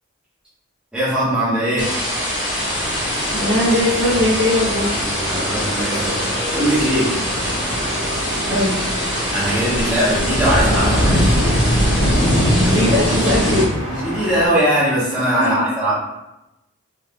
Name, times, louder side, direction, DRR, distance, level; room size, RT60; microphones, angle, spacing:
voice 1, 0.9-1.9 5.3-7.1 9.3-11.3 13.9-15.9, right 1 dB, 5° right, -11 dB, 1.3 m, -20 dB
sound 1, 1.8-13.7, equal, 25° left, 1.4 m, -21 dB
sound 2, 2.6-14.5, equal, 75° right, 1.4 m, -29 dB
voice 2, 3.3-5.0 8.5-9.1 12.5-13.6 15.4-15.7, left 1 dB, 55° right, -6 dB, 0.7 m, -20 dB
3.5 x 3.1 x 2.3 m, 0.93 s
head